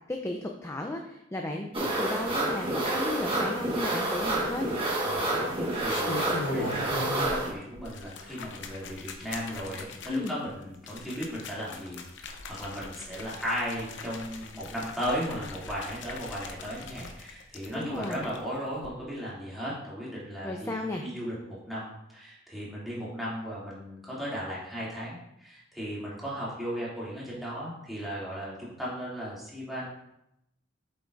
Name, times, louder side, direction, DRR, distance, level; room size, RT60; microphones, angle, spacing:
voice 1, 0.1-4.7 10.1-10.3 17.7-18.3 20.4-21.0, left 2 dB, 15° left, 2 dB, 0.5 m, -34 dB
sound 1, 1.7-7.5, right 1 dB, 30° right, 1.4 m, -29 dB
sound 2, 4.1-4.8 5.6-7.5 7.7-18.4 18.8-18.9, left 3 dB, 70° left, 0.7 m, -40 dB
voice 2, 5.0-29.9, equal, ahead, -8 dB, 2.6 m, -36 dB
7.7 x 5.6 x 2.5 m, 0.81 s
head